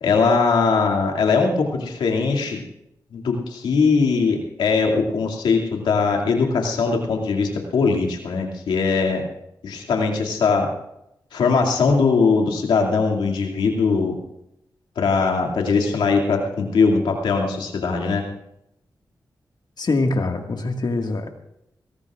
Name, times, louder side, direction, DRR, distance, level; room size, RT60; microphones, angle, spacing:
voice 1, 0.0-2.6 3.1-9.3 9.6-10.7 11.3-14.2 15.0-18.3, left 4 dB, 90° left, 1 dB, 2.4 m, -20 dB
voice 2, 19.8-21.3, left 3 dB, 60° left, 4 dB, 1.8 m, -23 dB
22.5 x 18.0 x 2.5 m, 0.81 s
cardioid pair, 45°, 8 cm